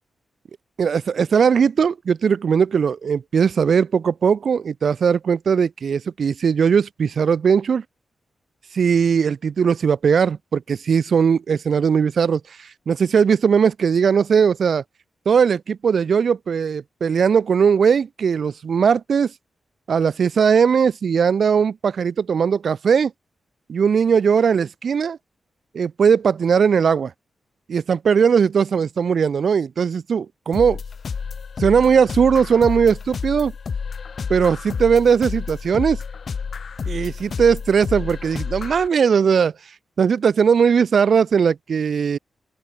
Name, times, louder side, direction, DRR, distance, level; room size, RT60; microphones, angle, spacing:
voice 1, 0.8-7.8 8.7-14.8 15.3-19.3 19.9-23.1 23.7-25.2 25.7-27.1 27.7-30.8 31.6-33.5 34.3-36.0 36.9-39.5 40.0-42.2, right 6 dB, 60° right, 0.3 m, -19 dB
sound 1, 30.5-38.9, left 5 dB, 55° left, 1.3 m, -30 dB
open air
wide cardioid pair, 120°, 0 cm